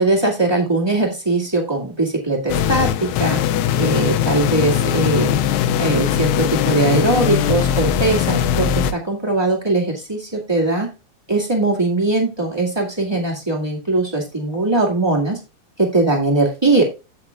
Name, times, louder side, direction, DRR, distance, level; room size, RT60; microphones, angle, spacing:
voice 1, 0.0-3.4 3.8-5.4 5.8-10.9 11.3-15.4 15.8-16.8, right 2 dB, 20° right, -3 dB, 0.6 m, -20 dB
sound 1, 2.5-8.9, left 9 dB, 90° left, 2.9 m, -20 dB
15.0 x 5.9 x 2.4 m, 0.30 s
omnidirectional pair, 4.6 m